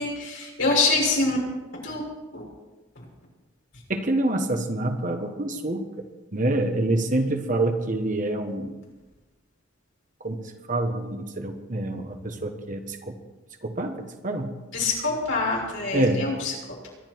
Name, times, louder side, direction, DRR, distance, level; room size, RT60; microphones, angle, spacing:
voice 1, 0.0-1.4 1.8-2.0 2.3-2.4 3.0-3.1 14.7-16.5, left 3 dB, 65° left, -3 dB, 6.8 m, -25 dB
voice 2, 3.9-5.9 6.3-8.8 10.2-10.4 10.7-13.1 13.6-14.6 15.9-16.3, right 1 dB, 40° right, 5 dB, 1.3 m, -26 dB
24.0 x 11.5 x 4.7 m, 1.2 s
head